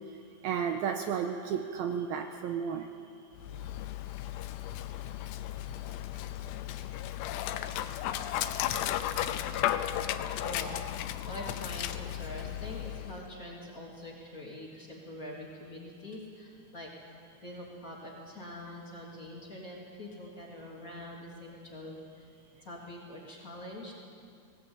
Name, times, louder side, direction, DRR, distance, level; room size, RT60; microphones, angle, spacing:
voice 1, 0.4-2.9, right 7 dB, 75° right, 5 dB, 2.4 m, -32 dB
Dog, 3.4-13.3, left 12 dB, 85° left, 2.9 m, -35 dB
voice 2, 10.4-10.8 11.2-22.3 22.6-23.9, left 1 dB, 20° left, -4 dB, 2.9 m, -44 dB
19.5 x 18.5 x 8.9 m, 2.3 s
omnidirectional pair, 4.9 m